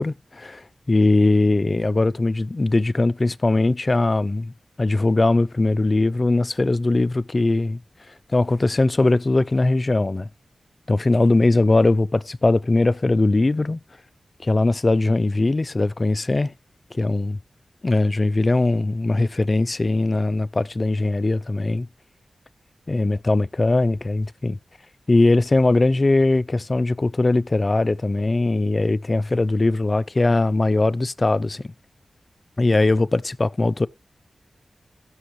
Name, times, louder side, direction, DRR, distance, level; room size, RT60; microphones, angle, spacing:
voice 1, 0.0-4.5 4.8-7.8 8.3-10.3 10.9-13.8 14.4-16.5 16.9-17.4 17.8-21.9 22.9-24.6 25.1-31.7 32.6-33.9, left 2 dB, 40° left, 0.5 m, -20 dB
16.5 x 6.4 x 3.1 m
cardioid pair, 50°, 0 cm